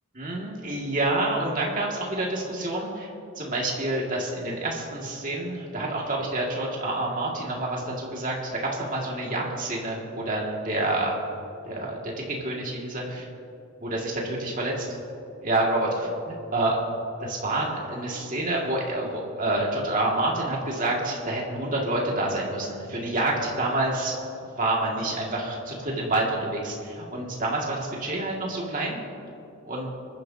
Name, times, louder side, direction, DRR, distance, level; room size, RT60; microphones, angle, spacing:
voice 1, 0.1-3.1 3.4-8.3 8.6-11.2 11.7-13.3 13.8-14.7 15.4-16.8 17.2-29.0 29.6-29.9, right 2 dB, 35° right, -2 dB, 2.3 m, -28 dB
25.5 x 10.5 x 2.9 m, 2.7 s
head